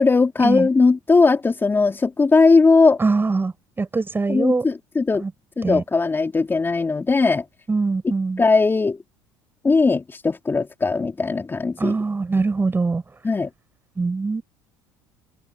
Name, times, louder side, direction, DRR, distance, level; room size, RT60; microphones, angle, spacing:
voice 1, 0.0-3.0 4.3-5.2 5.6-7.4 8.4-9.0 9.6-11.9 13.2-13.5, left 4 dB, 20° left, 3.0 m, -18 dB
voice 2, 3.0-4.6 5.2-5.3 5.6-5.8 7.7-8.4 11.8-13.0 14.0-14.4, right 3 dB, 20° right, 6.7 m, -23 dB
hypercardioid pair, 70°, 11 cm